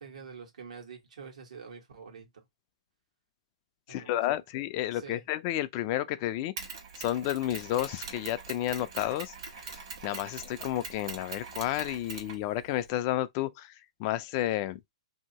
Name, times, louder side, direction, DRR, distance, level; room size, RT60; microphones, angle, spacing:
voice 1, 0.0-2.3 3.9-4.2 4.9-5.2, right 6 dB, 80° right, 1.4 m, -46 dB
voice 2, 3.9-6.5 7.0-14.9, left 14 dB, 30° left, 0.3 m, -31 dB
Mechanisms, 6.6-12.9, right 5 dB, 50° right, 1.3 m, -43 dB
2.9 x 2.8 x 2.8 m
hypercardioid pair, 150°, 4 cm